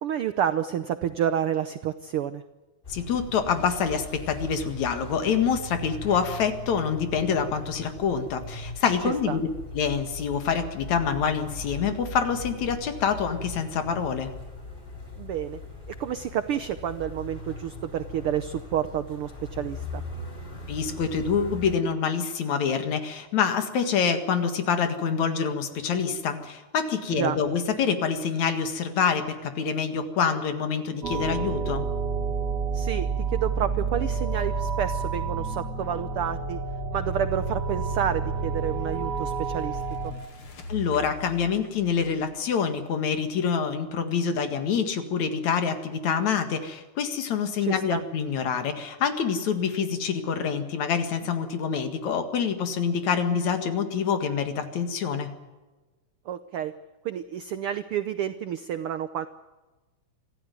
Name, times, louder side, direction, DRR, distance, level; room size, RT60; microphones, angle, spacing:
voice 1, 0.0-2.4 9.0-9.4 15.2-15.6 15.9-20.0 27.2-27.4 32.7-36.6 36.9-40.1 47.6-48.0 56.3-56.7 57.0-59.3, right 9 dB, 80° right, 12 dB, 1.2 m, -29 dB
sound 1, 2.8-21.8, left 2 dB, 15° left, 3.8 m, -40 dB
voice 2, 2.9-9.5 9.7-14.3 20.7-31.9 40.7-55.3, left 6 dB, 65° left, 8 dB, 3.1 m, -26 dB
sound 2, 31.0-40.1, right 4 dB, 15° right, 4.4 m, -29 dB
sound 3, 38.2-43.8, equal, 45° left, 2.8 m, -45 dB
25.5 x 15.0 x 9.3 m, 1.2 s
omnidirectional pair, 3.5 m